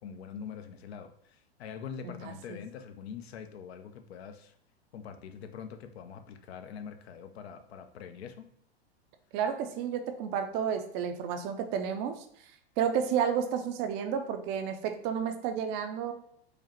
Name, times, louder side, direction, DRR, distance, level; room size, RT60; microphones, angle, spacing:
voice 1, 0.0-4.6 4.9-8.5, left 7 dB, 75° left, 8 dB, 0.6 m, -44 dB
voice 2, 2.0-2.6 9.3-16.1, right 7 dB, 35° right, 7 dB, 0.4 m, -31 dB
4.8 x 2.1 x 2.9 m, 0.68 s
hypercardioid pair, 115°, 32 cm